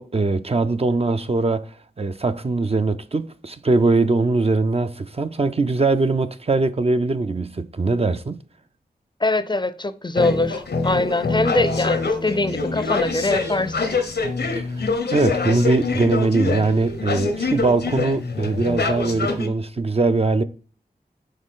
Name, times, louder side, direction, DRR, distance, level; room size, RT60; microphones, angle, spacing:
voice 1, 0.0-8.4 14.5-14.9 15.1-20.4, right 3 dB, 35° right, 0.5 m, -21 dB
voice 2, 9.2-13.7, left 2 dB, 25° left, 0.5 m, -22 dB
sound 1, 10.1-19.5, left 4 dB, 90° left, 1.0 m, -25 dB
6.4 x 4.4 x 3.7 m
wide cardioid pair, 55°, 17 cm